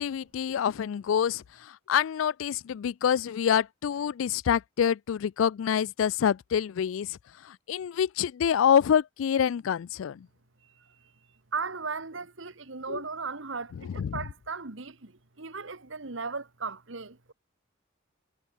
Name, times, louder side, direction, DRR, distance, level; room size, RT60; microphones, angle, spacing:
voice 1, 0.0-7.2 7.4-10.3 12.9-13.0 13.7-14.3, left 8 dB, 75° left, 0.3 m, -27 dB
voice 2, 11.5-17.3, right 4 dB, 70° right, 1.6 m, -36 dB
head